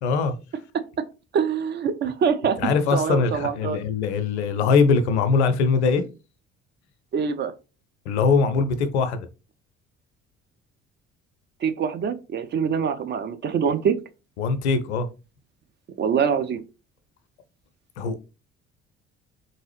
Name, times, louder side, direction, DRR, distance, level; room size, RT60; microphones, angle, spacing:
voice 1, 0.0-0.3 2.6-6.0 8.1-9.3 14.4-15.1 18.0-18.2, left 5 dB, 70° left, 0.5 m, -21 dB
voice 2, 1.3-3.8 7.1-7.5 11.6-14.0 16.0-16.6, right 7 dB, 30° right, 0.4 m, -24 dB
3.7 x 2.7 x 3.0 m
figure-of-eight pair, 50°, 34 cm